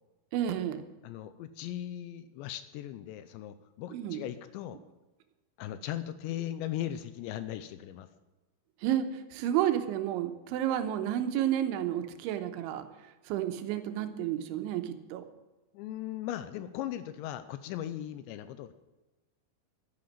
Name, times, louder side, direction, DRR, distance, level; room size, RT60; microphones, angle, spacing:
voice 1, 0.3-0.8 3.9-4.2 8.8-12.9 13.3-15.2, right 11 dB, 80° right, 8 dB, 3.3 m, -31 dB
voice 2, 1.0-4.8 5.6-8.1 15.7-18.7, left 12 dB, 85° left, 12 dB, 2.7 m, -38 dB
11.5 x 10.5 x 7.3 m, 1.1 s
omnidirectional pair, 5.4 m